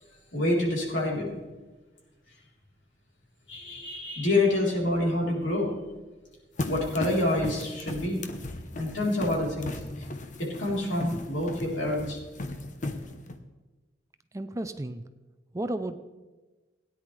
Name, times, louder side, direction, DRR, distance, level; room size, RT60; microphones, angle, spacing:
voice 1, 0.3-1.3 3.5-5.7 6.6-8.2 8.7-9.8 10.4-12.2, left 1 dB, 85° left, -3 dB, 3.7 m, -27 dB
sound 1, 6.6-13.4, left 2 dB, 40° left, 0.8 m, -37 dB
voice 2, 14.3-15.0 15.5-16.0, right 1 dB, 15° right, 10 dB, 0.4 m, -32 dB
17.0 x 9.9 x 3.3 m, 1.2 s
head